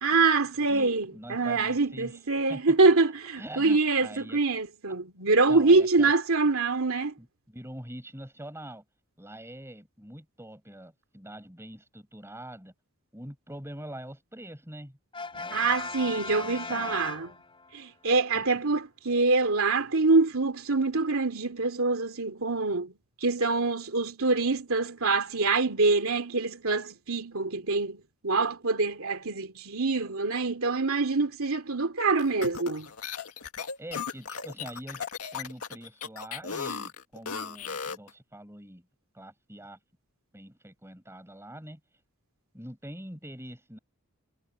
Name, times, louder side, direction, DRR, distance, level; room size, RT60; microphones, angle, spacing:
voice 1, 0.0-7.1 15.5-17.3 17.7-22.9 23.2-32.9, right 3 dB, 65° right, 2.8 m, -25 dB
voice 2, 0.7-2.2 2.5-2.6 3.4-4.4 5.5-6.1 7.2-8.8 9.2-12.7 13.1-15.0 15.4-15.7 16.0-17.0 18.3-18.6 33.8-35.1 35.3-38.9 39.1-39.8 40.3-41.8 42.5-43.8, right 1 dB, 10° right, 7.1 m, -44 dB
Brass instrument, 15.1-17.8, left 4 dB, 25° left, 5.2 m, -38 dB
sound 1, 32.2-38.1, left 6 dB, 85° left, 2.0 m, -36 dB
head